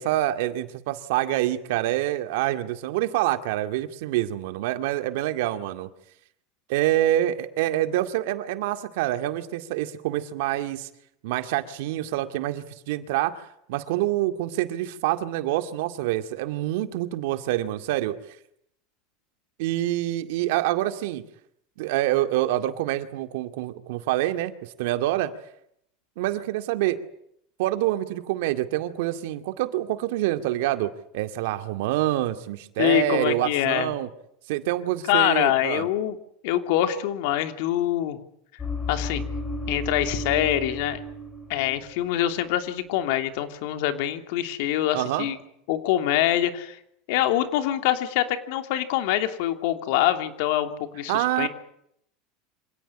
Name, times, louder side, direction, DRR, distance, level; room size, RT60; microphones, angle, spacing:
voice 1, 0.0-5.9 6.7-10.9 11.2-13.3 13.7-18.2 19.6-21.2 21.8-24.5 24.8-25.3 26.2-27.0 27.6-34.1 34.5-35.9 44.9-45.3 51.1-51.5, right 14 dB, 75° right, 9 dB, 2.2 m, -26 dB
voice 2, 32.8-33.9 35.1-36.2 36.4-38.2 38.9-39.2 39.7-41.0 41.5-45.4 45.7-46.8 47.1-51.5, left 12 dB, 70° left, 8 dB, 3.0 m, -24 dB
sound 1, 38.6-42.1 42.3-42.7, left 2 dB, 20° left, 3.8 m, -33 dB
26.5 x 17.0 x 10.0 m, 0.73 s
supercardioid pair, 140°, 0 cm